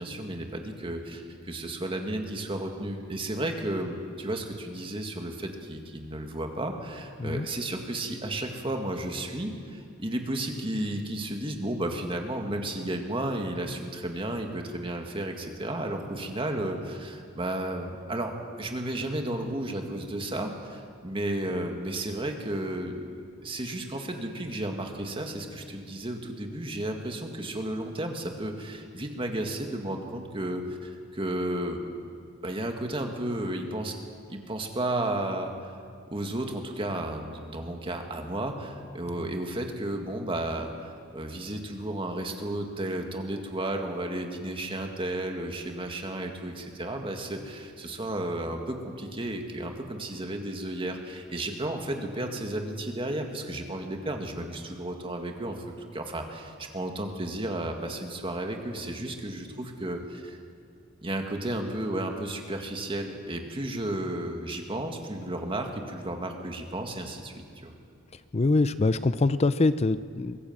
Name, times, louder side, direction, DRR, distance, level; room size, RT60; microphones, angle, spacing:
voice 1, 0.0-23.1 23.4-31.9 32.4-34.0 34.3-35.7 36.1-55.6 55.9-60.4 61.0-67.3 67.6-67.7, right 1 dB, 25° right, 3 dB, 2.0 m, -33 dB
voice 2, 68.3-70.4, left 3 dB, 30° left, 14 dB, 0.5 m, -24 dB
23.5 x 15.0 x 7.4 m, 2.4 s
head